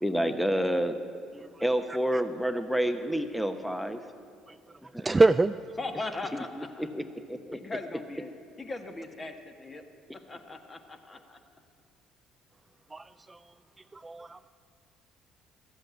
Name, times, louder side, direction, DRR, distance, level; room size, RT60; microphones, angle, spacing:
voice 1, 0.0-1.0 1.6-4.0 4.9-5.1 6.3-7.8, equal, ahead, 8 dB, 0.9 m, -29 dB
voice 2, 5.0-5.5 12.9-13.4 13.9-14.4, right 3 dB, 20° right, 13 dB, 0.3 m, -25 dB
voice 3, 5.8-6.5 6.7-6.8 7.5-8.3 8.6-9.8 10.3-11.4, left 3 dB, 30° left, 5 dB, 1.6 m, -38 dB
14.0 x 7.7 x 9.1 m, 2.3 s
supercardioid pair, 70°, 0 cm